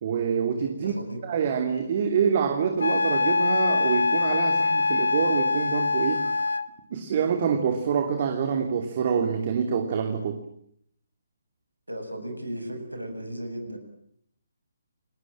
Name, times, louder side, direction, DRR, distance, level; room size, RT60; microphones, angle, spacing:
voice 1, 0.0-1.0 1.2-6.3 6.9-10.4, right 6 dB, 40° right, 6 dB, 2.7 m, -26 dB
voice 2, 0.8-1.2 11.9-13.8, right 1 dB, 90° right, 6 dB, 7.7 m, -35 dB
Wind instrument woodwind instrument, 2.8-6.7, left 3 dB, 70° left, 1.6 m, -24 dB
30.0 x 21.5 x 8.8 m, 0.69 s
figure-of-eight pair, 140°, 0 cm